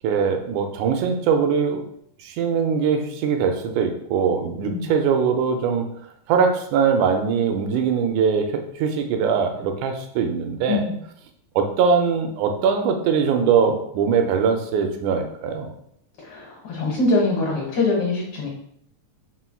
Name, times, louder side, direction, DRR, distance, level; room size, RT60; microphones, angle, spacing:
voice 1, 0.0-1.8 2.2-5.9 6.3-10.8 11.6-15.7, right 6 dB, 85° right, 5 dB, 2.0 m, -21 dB
voice 2, 10.7-11.0 16.2-18.5, left 2 dB, 60° left, -3 dB, 1.6 m, -23 dB
4.3 x 4.2 x 2.3 m, 0.71 s
omnidirectional pair, 3.5 m